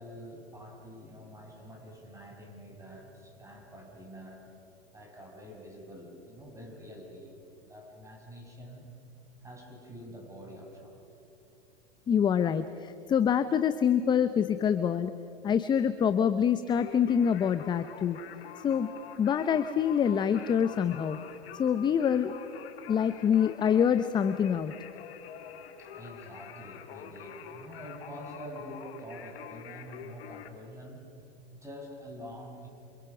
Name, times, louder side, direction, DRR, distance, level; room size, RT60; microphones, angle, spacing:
voice 1, 0.0-4.4 4.9-8.9 9.4-11.1 25.8-31.0 31.5-32.7, equal, 10° right, 1 dB, 6.2 m, -46 dB
voice 2, 12.1-15.1 15.4-18.2 18.6-18.9 19.2-21.2 21.5-22.3 22.9-24.7, left 8 dB, 15° left, 11 dB, 0.6 m, -26 dB
Singing, 16.7-30.5, left 9 dB, 65° left, 2.2 m, -46 dB
28.0 x 27.5 x 6.0 m, 2.8 s
hypercardioid pair, 120°, 32 cm